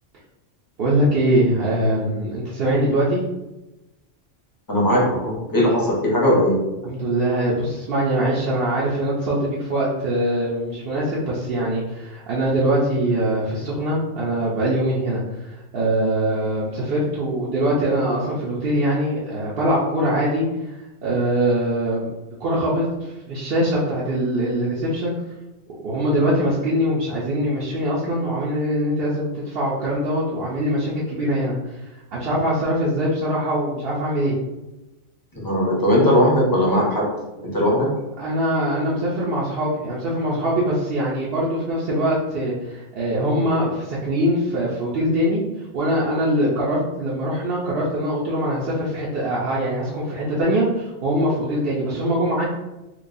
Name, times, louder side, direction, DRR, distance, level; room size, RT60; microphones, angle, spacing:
voice 1, 0.8-3.2 6.8-20.4 21.0-22.1 22.4-25.2 25.8-34.4 38.2-45.4 45.7-52.5, right 1 dB, 55° right, -7 dB, 0.8 m, -22 dB
voice 2, 4.7-6.6 35.3-37.1 37.5-37.9, equal, 20° left, -4 dB, 0.8 m, -18 dB
4.5 x 2.2 x 2.6 m, 1.0 s
omnidirectional pair, 1.3 m